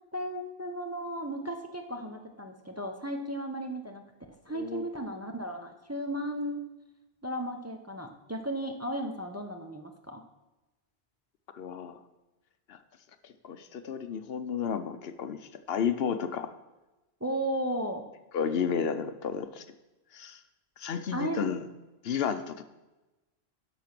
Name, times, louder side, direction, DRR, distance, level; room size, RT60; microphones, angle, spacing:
voice 1, 0.1-4.0 4.4-6.6 7.2-10.2 17.2-18.1 21.1-21.5, right 1 dB, 15° right, 3 dB, 0.7 m, -35 dB
voice 2, 4.5-4.9 11.5-12.0 12.7-12.8 13.2-16.5 18.3-19.6 20.1-20.4 20.8-21.7 22.0-22.6, left 7 dB, 70° left, 10 dB, 0.9 m, -32 dB
10.5 x 6.1 x 6.0 m, 1.1 s
omnidirectional pair, 1.1 m